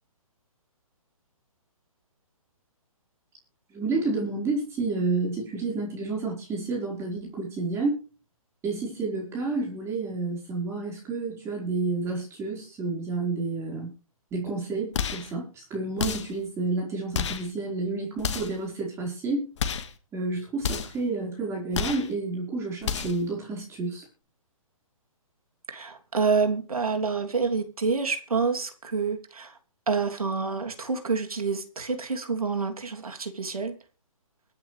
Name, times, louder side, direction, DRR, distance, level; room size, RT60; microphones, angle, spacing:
voice 1, 3.7-8.0 8.6-13.9 14.3-19.5 20.1-24.1, right 3 dB, 15° right, -2 dB, 4.7 m, -30 dB
sound 1, 14.9-15.3 16.0-16.4 17.1-17.5 18.2-18.6 19.6-20.0 20.6-21.0 21.7-22.1 22.8-23.3, left 7 dB, 55° left, 1.9 m, -30 dB
voice 2, 25.7-29.5 29.9-33.7, right 5 dB, 85° right, 5 dB, 3.2 m, -27 dB
24.5 x 9.2 x 3.4 m, 0.36 s
hypercardioid pair, 140°, 18 cm